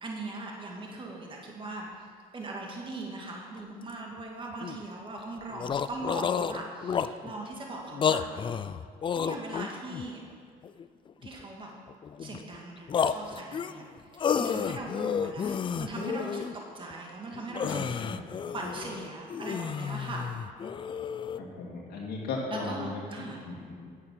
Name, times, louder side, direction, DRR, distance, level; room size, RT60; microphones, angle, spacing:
voice 1, 0.0-1.9 2.3-8.2 9.2-10.2 11.2-11.7 12.2-13.9 14.1-17.9 18.5-20.3 22.5-23.4, right 2 dB, 30° right, -1 dB, 1.9 m, -40 dB
sound 1, 3.6-3.7 3.9-4.0 4.5-4.8 5.2-5.3 5.5-7.3 7.9-10.1 10.6-11.4 11.9-12.6 12.9-16.5 16.9-17.0 17.3-21.4, left 7 dB, 30° left, 0.4 m, -31 dB
voice 2, 17.6-18.2 21.4-23.9, left 3 dB, 65° left, -4 dB, 2.0 m, -37 dB
9.6 x 8.5 x 6.1 m, 2.1 s
cardioid pair, 110°, 17 cm